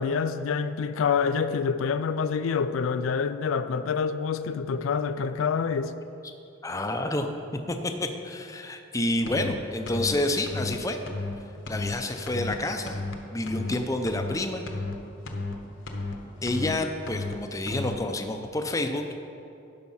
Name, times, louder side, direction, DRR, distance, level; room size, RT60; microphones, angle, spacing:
voice 1, 0.0-5.9, left 6 dB, 85° left, 0.4 m, -27 dB
voice 2, 6.6-7.3 7.7-11.0 11.7-13.0 13.3-14.6 16.4-19.0, left 1 dB, 15° left, 0.5 m, -29 dB
sound 1, 9.3-9.6 9.9-10.2 10.5-10.8 11.1-11.4 11.7-12.0 12.3-12.6 12.9-13.2 13.5-13.8 14.1-14.4 14.7-15.0 15.3-15.6 15.9-16.2 16.5-16.8 17.1-17.4 17.7-18.0, left 3 dB, 65° left, 0.9 m, -32 dB
10.5 x 5.8 x 5.5 m
head